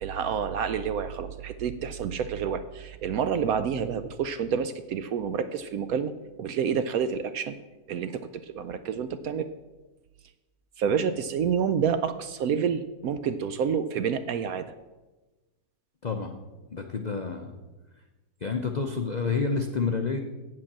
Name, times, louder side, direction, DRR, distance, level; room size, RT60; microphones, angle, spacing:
voice 1, 0.0-6.1 6.4-7.6 7.9-9.5 10.8-14.7, right 7 dB, 70° right, 11 dB, 0.8 m, -28 dB
voice 2, 16.0-16.4 16.7-17.5 18.4-20.2, left 4 dB, 75° left, 4 dB, 0.4 m, -29 dB
8.5 x 7.7 x 7.3 m, 1.1 s
omnidirectional pair, 1.9 m